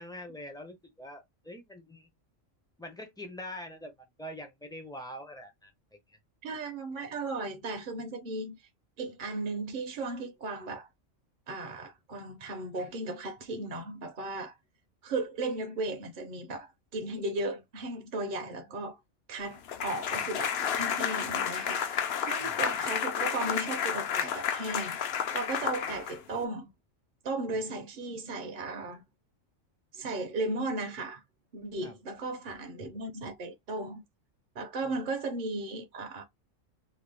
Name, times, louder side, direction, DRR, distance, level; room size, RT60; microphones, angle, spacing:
voice 1, 0.0-2.1 2.8-3.9 4.2-5.7 6.1-6.2 22.4-22.5 31.8-31.9 34.8-34.9, left 1 dB, 5° left, 0.4 m, -44 dB
voice 2, 6.4-8.7 9.0-10.9 11.5-14.6 15.0-19.0 19.3-25.0 25.3-26.7 27.2-29.0 29.9-31.2 31.5-34.0 34.5-36.2, right 2 dB, 50° right, 0.6 m, -36 dB
sound 1, 19.7-26.4, left 8 dB, 60° left, 0.7 m, -31 dB
2.9 x 2.2 x 3.3 m
omnidirectional pair, 1.3 m